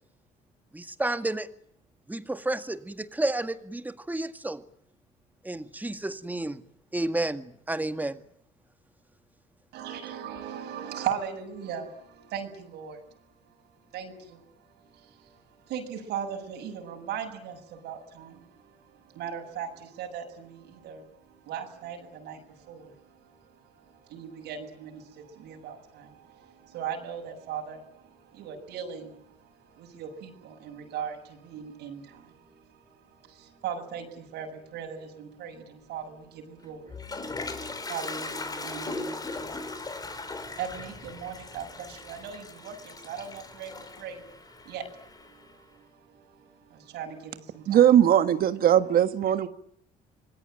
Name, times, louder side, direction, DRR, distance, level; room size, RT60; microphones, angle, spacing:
voice 1, 0.7-1.5 2.1-4.6 5.4-6.6 6.9-8.2, right 2 dB, 10° right, 10 dB, 1.9 m, -31 dB
voice 2, 9.7-47.9, right 8 dB, 80° right, 3 dB, 7.4 m, -39 dB
Toilet flush, 36.6-45.5, left 3 dB, 20° left, 3.8 m, -39 dB
voice 3, 47.7-49.5, right 10 dB, 60° right, 10 dB, 1.6 m, -20 dB
26.5 x 20.5 x 9.1 m, 0.70 s
cardioid pair, 110°, 17 cm